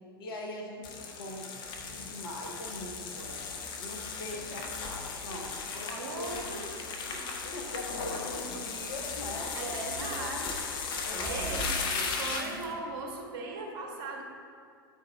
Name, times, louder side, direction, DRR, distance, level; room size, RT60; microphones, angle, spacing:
voice 1, 0.2-1.6 1.9-3.4 3.8-6.6 7.0-9.6 10.0-10.5 11.1-12.7, left 1 dB, 70° left, 1 dB, 1.2 m, -42 dB
Brake Gravel High Speed OS, 0.8-12.7, left 4 dB, 40° left, 0.9 m, -36 dB
voice 2, 5.9-6.6 9.5-10.6 11.2-11.7 12.2-14.2, right 3 dB, 55° right, 1 dB, 1.4 m, -38 dB
9.4 x 4.6 x 4.0 m, 2.2 s
hypercardioid pair, 90°, 13 cm